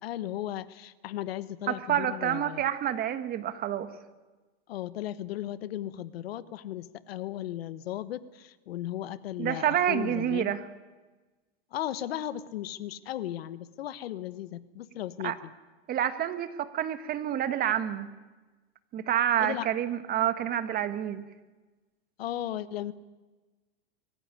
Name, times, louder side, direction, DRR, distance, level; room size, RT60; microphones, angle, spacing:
voice 1, 0.0-2.6 4.7-10.6 11.7-15.5 19.4-19.7 22.2-22.9, left 12 dB, 80° left, 16 dB, 1.2 m, -36 dB
voice 2, 1.7-3.9 9.4-10.6 15.2-15.3 15.9-18.1 18.9-21.2, right 10 dB, 30° right, 11 dB, 1.6 m, -28 dB
23.0 x 15.0 x 9.8 m, 1.2 s
supercardioid pair, 135°, 30 cm